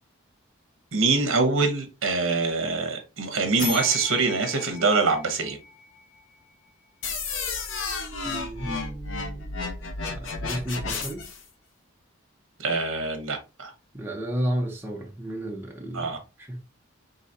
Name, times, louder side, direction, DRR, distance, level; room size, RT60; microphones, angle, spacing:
voice 1, 0.9-5.6 12.6-13.7 15.9-16.2, right 3 dB, 70° right, 0.9 m, -24 dB
sound 1, 3.6-6.3, left 3 dB, 50° left, 2.2 m, -36 dB
sound 2, 7.0-11.4, left 4 dB, 65° left, 0.7 m, -32 dB
voice 2, 8.2-9.7 10.1-11.2 13.9-16.6, right 1 dB, 10° right, 0.8 m, -33 dB
3.9 x 3.9 x 2.7 m
head